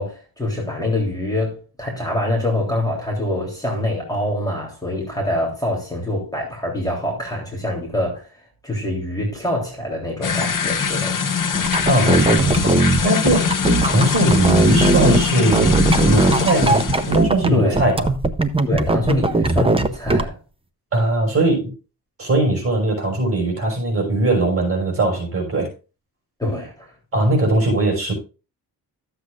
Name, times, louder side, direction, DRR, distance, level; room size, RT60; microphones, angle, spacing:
voice 1, 0.0-8.3 8.6-11.2 17.5-17.8 18.7-20.3 26.4-26.9, left 1 dB, 10° left, 3.4 m, -25 dB
sound 1, 10.2-17.2, left 6 dB, 55° left, 1.3 m, -22 dB
sound 2, 11.5-15.2 15.5-17.5 17.7-20.2, right 3 dB, 15° right, 0.6 m, -19 dB
voice 2, 11.8-13.5 13.8-18.1 20.9-21.7 22.2-25.7 27.1-28.1, right 2 dB, 35° right, 5.2 m, -20 dB
13.5 x 8.0 x 2.5 m
wide cardioid pair, 150°, 38 cm